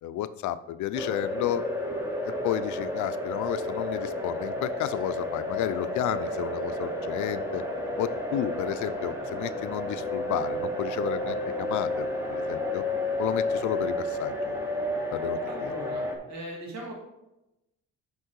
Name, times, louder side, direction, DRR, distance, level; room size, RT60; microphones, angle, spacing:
voice 1, 0.0-1.6 2.2-7.6 8.0-12.8 13.2-14.5 15.1-15.7, left 11 dB, 75° left, 14 dB, 0.5 m, -32 dB
sound 1, 0.9-16.2, left 1 dB, 10° right, 1.5 m, -31 dB
voice 2, 15.4-16.9, right 1 dB, 65° right, 0 dB, 2.0 m, -39 dB
6.4 x 5.4 x 4.6 m, 0.91 s
cardioid pair, 90°, 30 cm